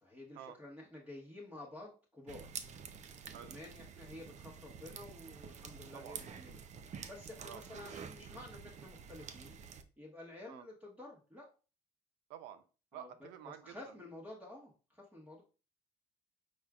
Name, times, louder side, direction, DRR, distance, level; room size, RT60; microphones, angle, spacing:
voice 1, 0.0-2.5 3.4-6.6 7.0-9.6 10.0-11.5 12.9-15.4, left 2 dB, 10° right, -4 dB, 1.1 m, -51 dB
sound 1, 2.3-9.8, right 7 dB, 45° right, 0.5 m, -49 dB
voice 2, 7.4-8.0 10.5-10.7 12.3-12.6 12.9-14.0, right 10 dB, 90° right, 10 dB, 0.6 m, -51 dB
4.9 x 4.1 x 2.3 m, 0.34 s
cardioid pair, 110°, 17 cm